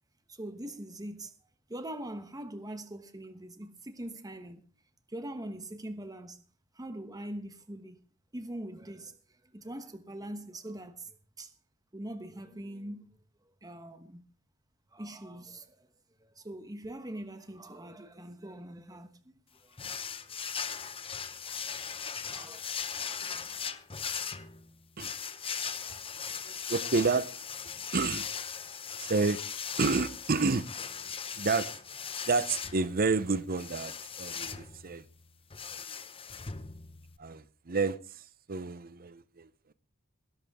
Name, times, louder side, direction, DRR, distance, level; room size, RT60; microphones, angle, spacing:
voice 1, 0.3-1.3 1.7-4.6 5.1-6.4 6.7-8.0 8.3-9.2 9.5-11.5 11.9-13.1 13.6-14.2 14.9-15.8 16.2-19.2 19.6-19.7 22.3-22.6, right 1 dB, 20° right, 1.2 m, -42 dB
sound 1, 19.8-37.2, left 7 dB, 25° left, 0.9 m, -39 dB
voice 2, 26.4-27.3 27.9-28.3 29.0-29.4 29.8-30.7 31.3-31.7 32.3-35.0 35.7-35.8 37.2-39.7, right 4 dB, 45° right, 0.8 m, -30 dB
19.5 x 11.5 x 3.7 m
head